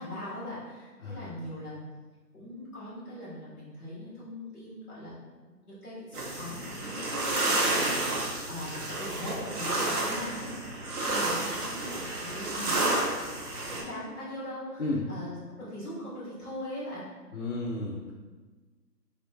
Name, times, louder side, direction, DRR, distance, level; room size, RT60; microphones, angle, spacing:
voice 1, 0.0-1.8 2.3-5.1 5.7-12.9 13.7-17.1, left 1 dB, 5° left, -17 dB, 1.3 m, -40 dB
sound 1, 6.1-13.8, right 2 dB, 65° right, 1.5 m, -30 dB
voice 2, 17.3-18.1, left 2 dB, 50° left, -4 dB, 0.6 m, -32 dB
4.2 x 3.3 x 3.8 m, 1.3 s
hypercardioid pair, 165°, 50 cm